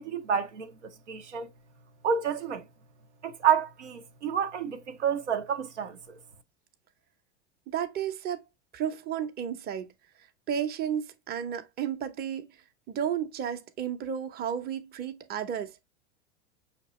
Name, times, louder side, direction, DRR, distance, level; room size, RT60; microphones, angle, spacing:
voice 1, 0.0-1.5 2.0-2.6 3.2-6.2, right 8 dB, 85° right, 0.8 m, -29 dB
voice 2, 7.7-8.4 8.7-9.9 10.5-12.5 12.9-15.8, right 9 dB, 30° right, 0.8 m, -32 dB
5.9 x 2.9 x 3.0 m
hypercardioid pair, 100°, 34 cm